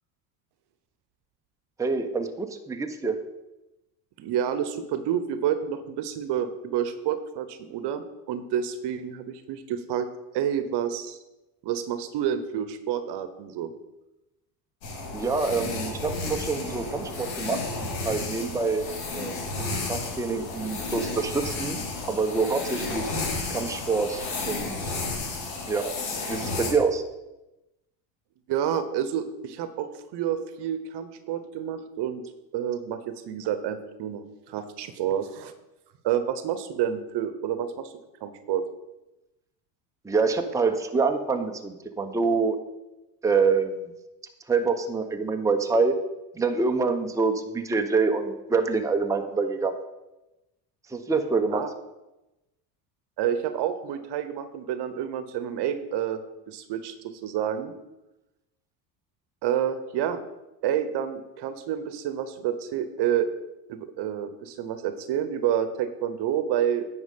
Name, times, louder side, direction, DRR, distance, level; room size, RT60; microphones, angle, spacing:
voice 1, 1.8-3.2 15.1-18.8 19.1-21.8 22.1-23.1 23.5-24.9 25.7-26.0 26.3-27.0 40.0-42.6 43.2-43.9 44.5-46.0 46.4-49.7 50.9-51.6, right 4 dB, 5° right, 5 dB, 0.8 m, -26 dB
voice 2, 4.2-10.1 10.3-11.2 11.6-13.7 28.5-32.2 32.5-35.5 36.0-37.9 38.2-38.6 51.5-51.7 53.2-56.2 56.5-57.7 59.4-60.2 60.6-63.3 63.7-66.9, right 9 dB, 55° right, 11 dB, 1.1 m, -29 dB
sound 1, 14.8-26.7, left 3 dB, 85° left, 2.5 m, -32 dB
9.6 x 5.3 x 5.4 m, 0.98 s
hypercardioid pair, 85°, 49 cm